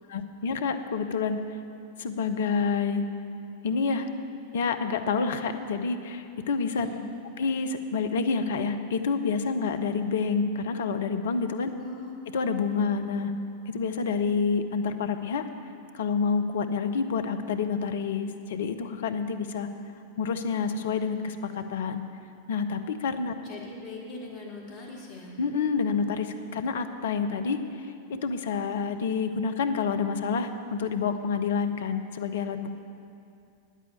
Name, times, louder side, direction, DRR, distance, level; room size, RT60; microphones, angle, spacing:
voice 1, 0.1-1.4 2.0-3.1 3.6-4.1 4.5-6.9 7.4-11.7 12.3-13.3 13.7-15.5 15.9-19.7 20.2-22.0 22.5-23.3 25.4-27.6 28.1-32.7, left 5 dB, 60° left, 8 dB, 0.7 m, -28 dB
voice 2, 6.6-7.0 11.7-12.1 23.4-25.4, left 3 dB, 45° left, -2 dB, 2.2 m, -41 dB
9.6 x 8.3 x 8.1 m, 2.5 s
figure-of-eight pair, 90°, 0 cm